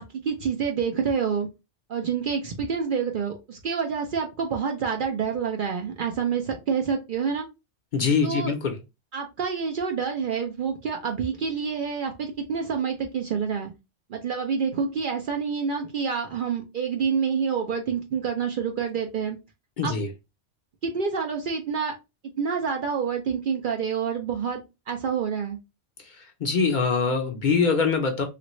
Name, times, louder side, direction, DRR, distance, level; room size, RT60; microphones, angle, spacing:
voice 1, 0.0-1.5 1.9-7.5 8.2-8.5 9.1-13.7 14.1-19.4 19.8-19.9 20.8-21.9 22.4-25.6, right 6 dB, 60° right, 0.6 m, -27 dB
voice 2, 7.9-8.8 19.8-20.1 26.0-28.2, left 5 dB, 55° left, 0.6 m, -24 dB
3.1 x 2.5 x 2.9 m
omnidirectional pair, 1.1 m